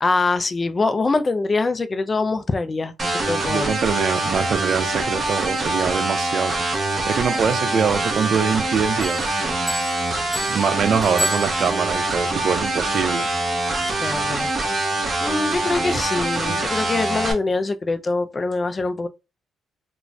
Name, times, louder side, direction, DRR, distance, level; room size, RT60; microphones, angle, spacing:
voice 1, 0.0-3.7 13.9-14.5 15.2-19.1, left 3 dB, 30° left, 0.3 m, -24 dB
sound 1, 3.0-17.3, right 2 dB, 30° right, 0.8 m, -24 dB
voice 2, 3.4-6.6 7.1-9.4 10.5-13.3 16.5-16.6, right 6 dB, 60° right, 0.4 m, -23 dB
Bell, 9.0-12.1, equal, 5° right, 1.2 m, -32 dB
2.5 x 2.2 x 3.1 m
cardioid pair, 90°, 0 cm